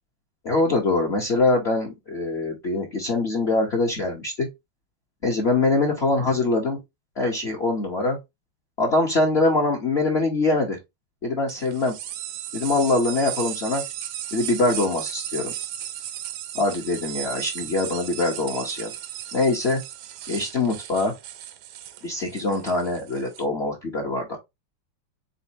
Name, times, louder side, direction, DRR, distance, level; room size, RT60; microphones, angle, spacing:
voice 1, 0.4-4.5 5.2-6.8 7.2-8.2 8.8-10.8 11.2-11.9 12.5-13.8 14.3-15.5 16.5-18.9 19.3-19.8 20.3-21.1 22.0-24.4, left 3 dB, 40° left, 0.9 m, -23 dB
sound 1, 11.5-23.4, right 11 dB, 75° right, 1.4 m, -35 dB
4.1 x 4.1 x 2.7 m
omnidirectional pair, 2.2 m